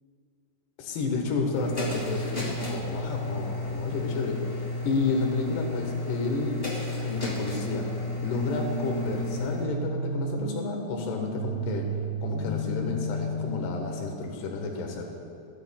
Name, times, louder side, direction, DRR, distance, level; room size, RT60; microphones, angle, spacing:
voice 1, 0.8-6.6 7.0-7.9 8.2-11.9 12.2-15.1, left 3 dB, 75° left, 2 dB, 3.3 m, -31 dB
sound 1, 1.5-9.6, left 2 dB, 20° left, 1.8 m, -32 dB
sound 2, 8.3-14.3, right 1 dB, 20° right, 1.3 m, -33 dB
19.0 x 10.5 x 2.2 m, 2.6 s
omnidirectional pair, 4.8 m